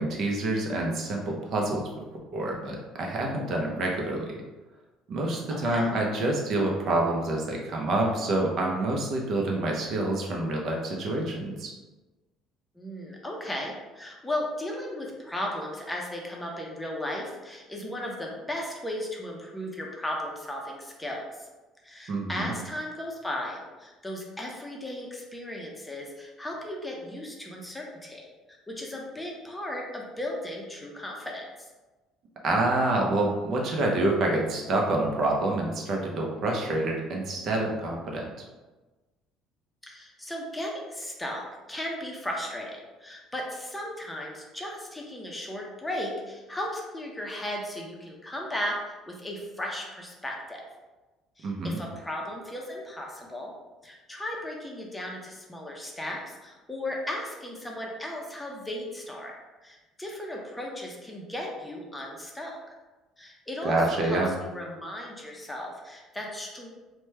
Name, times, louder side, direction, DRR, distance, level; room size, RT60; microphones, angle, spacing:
voice 1, 0.0-1.9 2.3-4.4 5.1-11.7 22.1-22.5 32.4-38.3 51.4-51.8 63.6-64.3, right 2 dB, 55° right, 0 dB, 0.6 m, -27 dB
voice 2, 5.5-5.9 12.8-21.2 21.8-28.3 28.7-31.7 39.8-41.4 41.7-50.6 51.4-53.5 53.8-59.3 59.6-62.8 63.2-64.2 64.5-66.7, left 1 dB, 10° left, -1 dB, 0.6 m, -36 dB
2.9 x 2.2 x 3.2 m, 1.2 s
cardioid pair, 100°, 0 cm